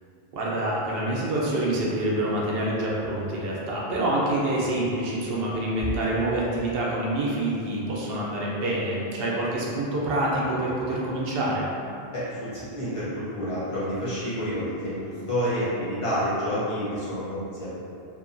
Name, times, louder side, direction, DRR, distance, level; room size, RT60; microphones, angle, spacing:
voice 1, 0.3-11.7, right 1 dB, 70° right, -5 dB, 0.8 m, -26 dB
voice 2, 12.1-17.7, equal, 35° left, -11 dB, 0.8 m, -29 dB
2.7 x 2.2 x 2.5 m, 2.7 s
omnidirectional pair, 1.0 m